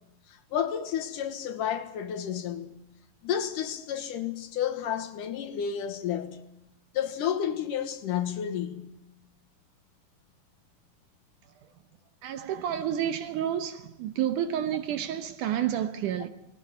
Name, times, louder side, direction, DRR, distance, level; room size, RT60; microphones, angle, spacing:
voice 1, 0.3-2.8 3.2-6.4 6.9-8.9, left 9 dB, 70° left, 2.6 m, -31 dB
voice 2, 12.2-16.3, right 10 dB, 70° right, 2.2 m, -30 dB
19.0 x 17.5 x 9.9 m
omnidirectional pair, 4.2 m